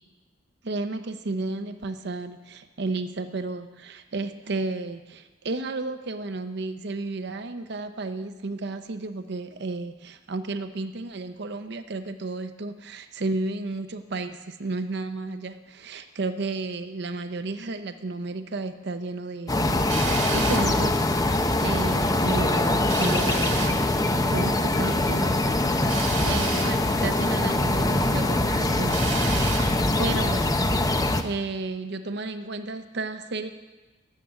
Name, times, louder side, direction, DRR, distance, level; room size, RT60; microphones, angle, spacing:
voice 1, 0.6-21.0 21.6-23.9 24.3-25.8 26.2-30.6 31.2-33.5, right 3 dB, 60° right, 9 dB, 0.7 m, -32 dB
sound 1, 19.5-31.2, left 2 dB, 20° left, 0.7 m, -23 dB
Drill, 19.9-20.7 22.9-23.8 25.9-26.8 28.9-29.7, right 6 dB, 85° right, 2.1 m, -32 dB
14.0 x 7.6 x 9.9 m, 1.2 s
head